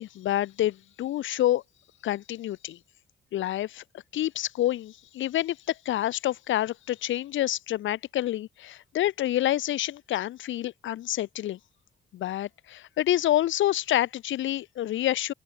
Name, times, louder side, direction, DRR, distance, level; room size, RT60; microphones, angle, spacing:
voice 1, 0.0-1.6 2.0-2.8 3.3-3.8 4.1-11.6 12.1-15.3, left 13 dB, 80° left, 1.1 m, -28 dB
open air
cardioid pair, 75°, 20 cm